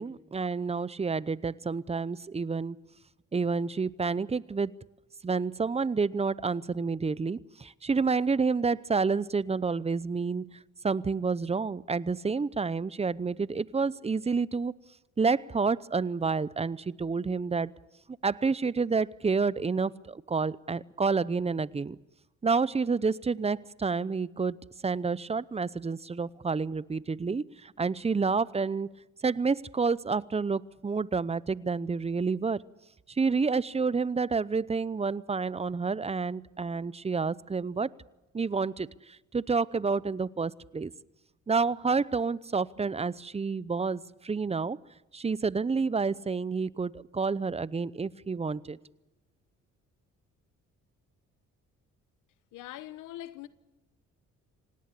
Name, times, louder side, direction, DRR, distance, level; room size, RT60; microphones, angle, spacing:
voice 1, 0.0-2.8 3.3-4.7 5.2-10.5 10.8-14.7 15.2-17.7 18.2-22.0 22.4-28.9 29.2-32.6 33.1-37.9 38.3-40.9 41.5-44.8 45.1-48.8, right 4 dB, 20° right, 0.7 m, -29 dB
voice 2, 52.5-53.5, left 14 dB, 90° left, 1.2 m, -42 dB
26.5 x 18.5 x 8.3 m
cardioid pair, 90°, 30 cm